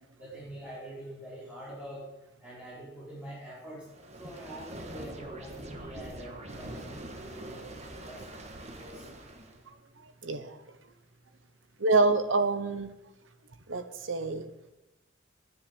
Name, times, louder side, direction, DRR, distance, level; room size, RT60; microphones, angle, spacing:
voice 1, 0.2-2.0 2.4-3.8 4.2-8.2 8.7-9.0, right 1 dB, 10° right, -11 dB, 5.0 m, -45 dB
sound 1, 3.9-9.7, right 1 dB, 35° right, 1.4 m, -44 dB
voice 2, 10.0-10.6 11.8-12.9 13.7-14.5, right 3 dB, 75° right, 10 dB, 1.1 m, -27 dB
10.0 x 9.5 x 8.1 m, 0.94 s
head